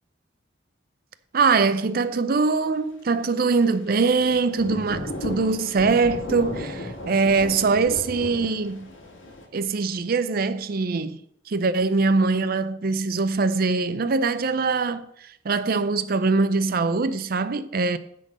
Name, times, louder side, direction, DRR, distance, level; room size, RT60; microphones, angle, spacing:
voice 1, 1.3-8.9 9.5-11.2 11.5-18.0, right 4 dB, 50° right, 0.5 m, -23 dB
Thunder / Rain, 3.9-9.4, left 1 dB, 80° left, 1.8 m, -35 dB
10.5 x 3.8 x 6.4 m
head